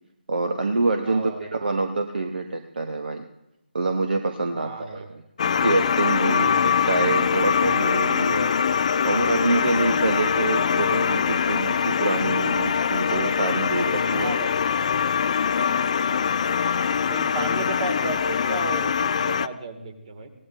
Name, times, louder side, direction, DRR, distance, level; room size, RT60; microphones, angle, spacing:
voice 1, 0.3-3.3 3.7-14.4, right 3 dB, 60° right, 6 dB, 1.1 m, -26 dB
voice 2, 1.1-1.5 4.5-5.1 6.3-6.6 9.6-10.0 14.1-14.6 15.9-16.6 17.1-20.3, right 4 dB, 40° right, 7 dB, 2.3 m, -35 dB
sound 1, 5.4-19.5, left 7 dB, 40° left, 0.4 m, -23 dB
23.5 x 17.5 x 2.7 m, 0.84 s
figure-of-eight pair, 150°, 6 cm